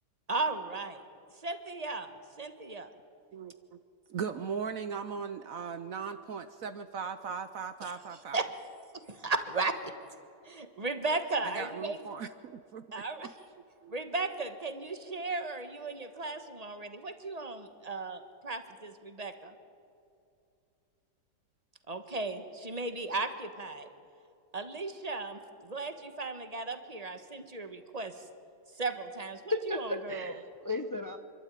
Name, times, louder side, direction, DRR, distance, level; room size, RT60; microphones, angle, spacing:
voice 1, 0.3-1.0 1.4-2.1 2.4-2.9 7.8-7.9 8.3-8.5 9.1-9.9 10.4-12.0 12.9-13.3 13.9-19.5 21.9-23.9 24.5-28.1 28.8-30.3, right 3 dB, 25° right, 9 dB, 1.3 m, -36 dB
voice 2, 3.3-3.8 4.1-8.4 10.8-10.9 11.4-12.8 13.8-14.0, right 6 dB, 60° right, 11 dB, 1.0 m, -38 dB
voice 3, 29.5-31.2, left 2 dB, 25° left, 8 dB, 0.5 m, -34 dB
27.0 x 12.5 x 9.2 m, 2.6 s
omnidirectional pair, 1.8 m